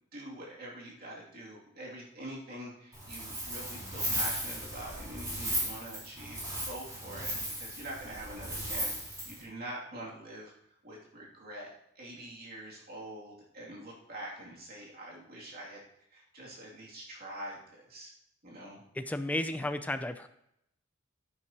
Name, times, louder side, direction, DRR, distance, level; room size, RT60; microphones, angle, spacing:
voice 1, 0.1-10.5 10.8-15.8 16.1-18.1 18.4-18.8 19.6-19.7, right 1 dB, 45° right, -4 dB, 2.7 m, -45 dB
Wind, 2.9-9.4, right 1 dB, 15° right, 4.0 m, -36 dB
voice 2, 18.9-20.3, left 1 dB, 5° left, 9 dB, 0.4 m, -33 dB
10.5 x 9.7 x 3.0 m, 0.78 s
head